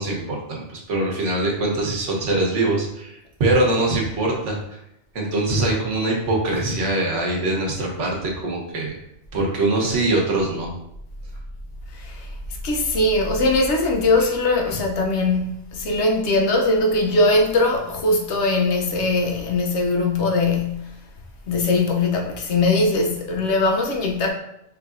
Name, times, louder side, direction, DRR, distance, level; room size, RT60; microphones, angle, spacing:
voice 1, 0.0-4.8 5.1-8.9 9.3-10.7, right 2 dB, 80° right, 1.3 m, -23 dB
voice 2, 11.9-12.3 12.6-20.9 21.5-24.3, left 2 dB, 70° left, 1.0 m, -21 dB
4.7 x 3.2 x 2.5 m
omnidirectional pair, 1.2 m